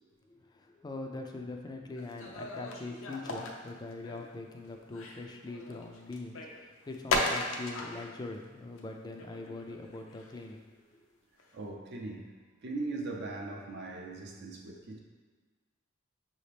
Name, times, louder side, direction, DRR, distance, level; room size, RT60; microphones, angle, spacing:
voice 1, 0.3-11.0, left 2 dB, 20° left, 3 dB, 0.3 m, -42 dB
sound 1, 2.0-4.3 4.6-8.1 8.4-8.5 8.8-8.9 9.2-10.4 11.4-11.5, left 2 dB, 85° left, 0.6 m, -36 dB
voice 2, 11.5-12.3 12.6-15.0, right 3 dB, 55° right, 1 dB, 0.5 m, -39 dB
5.7 x 2.8 x 3.3 m, 1.4 s
head